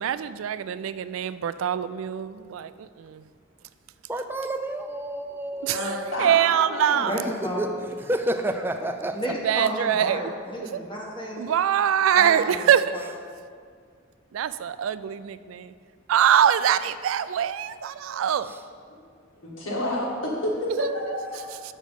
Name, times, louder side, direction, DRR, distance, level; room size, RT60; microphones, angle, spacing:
voice 1, 0.0-3.2 5.6-5.9 6.2-7.2 9.4-10.2 10.7-10.8 11.4-13.0 14.3-15.7 16.1-18.5 20.8-20.9, right 9 dB, 85° right, 14 dB, 0.3 m, -23 dB
voice 2, 4.1-6.3 7.1-9.5 18.4-18.6, right 1 dB, 10° right, 6 dB, 0.4 m, -30 dB
voice 3, 5.7-7.2 18.9-19.0 19.3-21.6, left 1 dB, 80° left, -3 dB, 1.8 m, -30 dB
voice 4, 7.1-7.6 9.1-11.4 12.1-13.0, equal, 25° left, -4 dB, 1.2 m, -32 dB
6.5 x 6.2 x 5.2 m, 2.1 s
head